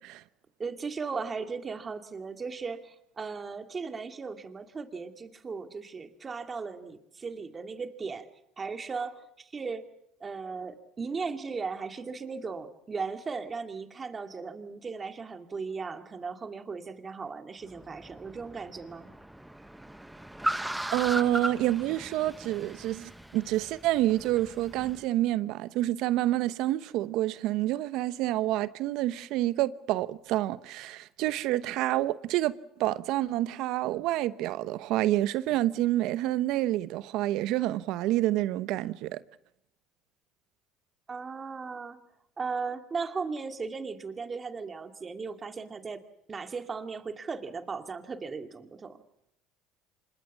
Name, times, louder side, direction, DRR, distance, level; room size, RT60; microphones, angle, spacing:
voice 1, 0.6-8.3 8.6-9.8 10.2-19.1 41.1-42.0 42.4-49.0, right 4 dB, 30° right, 2.4 m, -37 dB
Car, 17.6-25.0, right 1 dB, 5° right, 1.1 m, -38 dB
voice 2, 20.5-32.5 32.8-39.2, right 15 dB, 70° right, 0.9 m, -28 dB
26.0 x 21.0 x 7.3 m
supercardioid pair, 95°, 0 cm